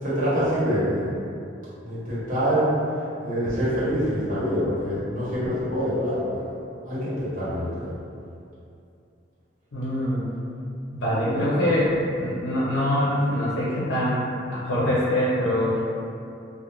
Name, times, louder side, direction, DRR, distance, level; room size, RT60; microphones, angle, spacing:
voice 1, 0.0-1.1 1.8-2.7 3.2-6.6 6.9-8.0 11.2-11.5, equal, 45° right, -11 dB, 1.0 m, -25 dB
voice 2, 9.7-10.3 10.9-11.9 12.2-14.2 14.5-15.8, left 1 dB, 65° left, -9 dB, 0.6 m, -24 dB
2.4 x 2.0 x 3.0 m, 2.5 s
head